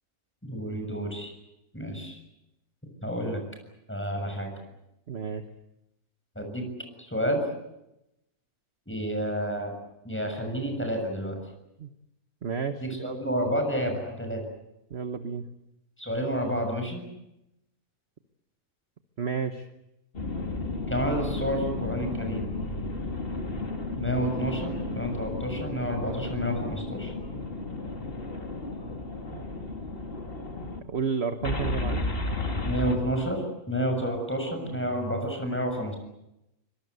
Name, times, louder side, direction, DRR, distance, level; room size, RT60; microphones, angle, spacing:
voice 1, 0.4-1.3 1.7-2.2 3.0-3.4 3.9-4.5 6.4-6.6 7.0-7.4 8.9-9.7 10.0-11.4 12.8-14.4 16.0-17.0 20.9-22.5 24.0-27.1 32.7-36.0, equal, 5° left, 4 dB, 6.9 m, -30 dB
voice 2, 5.1-5.4 11.8-11.9 12.4-13.2 14.9-15.5 19.2-19.7 29.3-29.4 30.9-32.0, right 6 dB, 45° right, 8 dB, 1.3 m, -31 dB
sound 1, 20.1-30.8 31.4-33.0, left 2 dB, 35° left, 2.9 m, -33 dB
25.0 x 23.5 x 8.1 m, 0.87 s
omnidirectional pair, 1.6 m